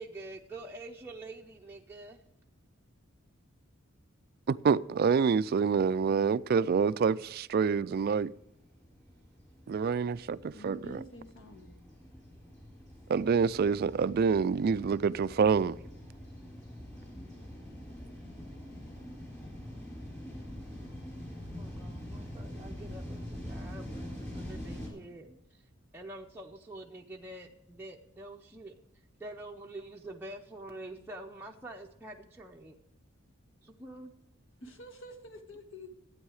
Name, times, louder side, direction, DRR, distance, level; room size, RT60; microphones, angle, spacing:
voice 1, 0.0-2.2 8.1-8.2 21.5-25.6 25.9-28.7 29.2-32.7 33.6-34.1, right 2 dB, 10° right, 0.6 m, -46 dB
voice 2, 4.5-8.3 9.7-10.2 10.4-11.0 13.1-15.8, right 6 dB, 45° right, 0.3 m, -27 dB
sound 1, 7.4-24.9, equal, 15° left, 3.8 m, -45 dB
voice 3, 10.4-11.8 34.6-35.9, equal, 65° left, 1.7 m, -48 dB
13.0 x 9.0 x 4.8 m
head